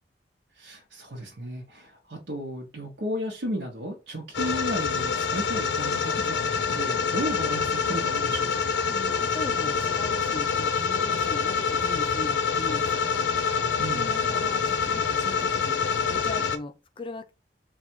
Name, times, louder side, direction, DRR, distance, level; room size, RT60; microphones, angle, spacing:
voice 1, 0.6-8.7 13.8-14.2, equal, 75° right, 0.9 m, -34 dB
sound 1, 4.3-16.6, left 6 dB, 85° left, 0.6 m, -26 dB
voice 2, 8.9-13.0 13.9-15.8 16.1-17.3, left 2 dB, 30° left, 0.4 m, -39 dB
3.6 x 2.3 x 4.5 m
head